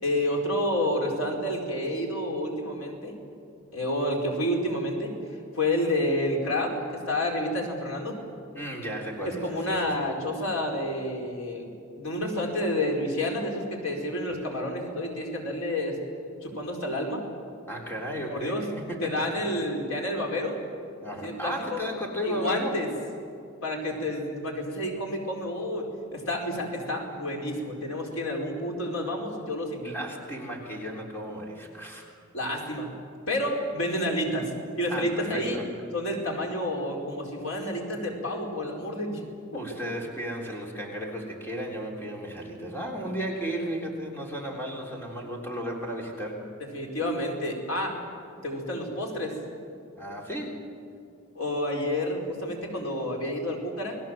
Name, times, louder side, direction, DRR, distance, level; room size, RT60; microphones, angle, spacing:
voice 1, 0.0-3.2 3.7-5.1 5.6-8.2 9.2-11.7 12.0-16.0 16.4-17.2 18.3-18.7 19.0-20.6 21.2-21.8 22.2-22.9 23.6-29.9 32.3-32.9 33.3-34.5 34.8-35.6 35.9-39.2 39.5-39.6 46.7-48.0 48.4-49.4 51.3-54.0, left 1 dB, 80° left, 1 dB, 4.9 m, -29 dB
voice 2, 8.5-10.1 17.7-19.1 21.0-22.7 29.8-32.1 32.6-32.8 34.9-35.7 39.5-46.4 50.0-50.6, equal, 10° left, -1 dB, 3.5 m, -34 dB
29.5 x 20.5 x 7.6 m, 2.5 s
head